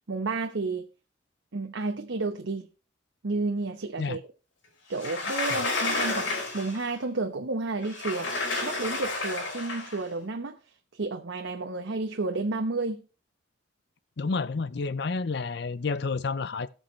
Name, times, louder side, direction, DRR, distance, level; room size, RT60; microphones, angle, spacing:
voice 1, 0.1-0.9 1.5-2.7 3.2-4.2 4.9-8.3 8.6-10.6 10.9-13.0, right 3 dB, 85° right, 0.9 m, -31 dB
Sliding door, 4.9-6.9 7.8-10.0, left 3 dB, 85° left, 4.4 m, -31 dB
voice 2, 14.2-16.7, left 4 dB, 60° left, 0.5 m, -30 dB
18.5 x 6.4 x 3.1 m
head